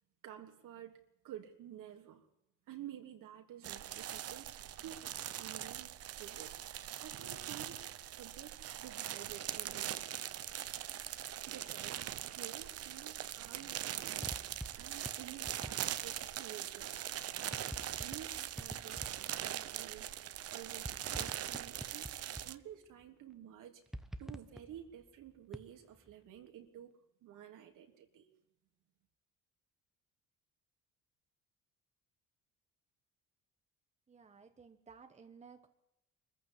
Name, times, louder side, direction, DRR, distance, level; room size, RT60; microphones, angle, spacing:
voice 1, 0.2-1.0 1.2-2.3 2.7-6.5 7.0-8.6 8.8-10.2 11.5-17.2 18.0-22.1 22.4-23.8 24.2-28.3, right 10 dB, 70° right, 4 dB, 3.3 m, -52 dB
sound 1, 3.6-22.6, right 11 dB, 45° right, 0.9 m, -42 dB
sound 2, 14.2-16.4 17.0-19.7 20.5-23.0 23.9-26.1, equal, ahead, 0.9 m, -48 dB
voice 2, 34.1-35.7, right 5 dB, 20° right, 7 dB, 1.3 m, -57 dB
24.5 x 14.5 x 10.0 m, 0.85 s
cardioid pair, 145°, 33 cm